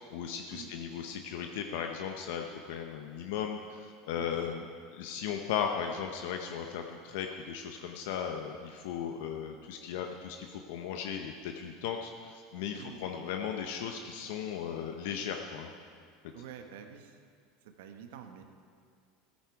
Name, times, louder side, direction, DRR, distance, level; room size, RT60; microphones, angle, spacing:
voice 1, 0.1-4.7 4.9-15.7, left 8 dB, 75° left, 4 dB, 0.7 m, -36 dB
voice 2, 16.3-17.2 17.8-18.4, right 8 dB, 80° right, 6 dB, 1.0 m, -47 dB
14.5 x 9.6 x 4.7 m, 2.1 s
supercardioid pair, 115°, 0 cm